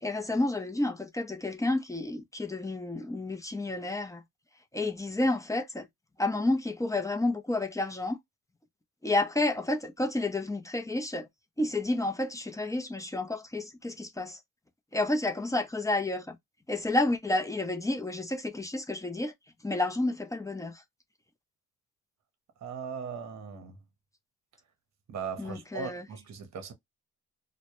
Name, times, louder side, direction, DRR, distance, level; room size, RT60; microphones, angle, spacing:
voice 1, 0.0-4.2 4.7-5.9 6.2-8.2 9.0-11.3 11.6-14.4 14.9-16.4 16.7-19.3 19.6-20.8 25.4-26.0, left 2 dB, 10° left, 0.4 m, -30 dB
voice 2, 22.6-23.8 25.1-26.7, right 6 dB, 60° right, 0.7 m, -38 dB
2.1 x 2.0 x 2.8 m
cardioid pair, 85°, 30 cm